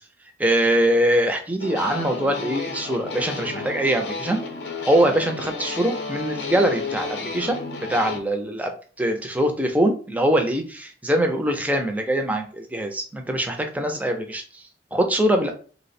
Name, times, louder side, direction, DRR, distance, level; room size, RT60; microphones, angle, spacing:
voice 1, 0.4-4.4 4.9-7.6 7.9-14.6 14.9-15.5, right 1 dB, 10° right, 5 dB, 0.4 m, -23 dB
sound 1, 1.6-8.2, left 4 dB, 70° left, 0.6 m, -32 dB
3.0 x 2.1 x 4.1 m, 0.41 s
head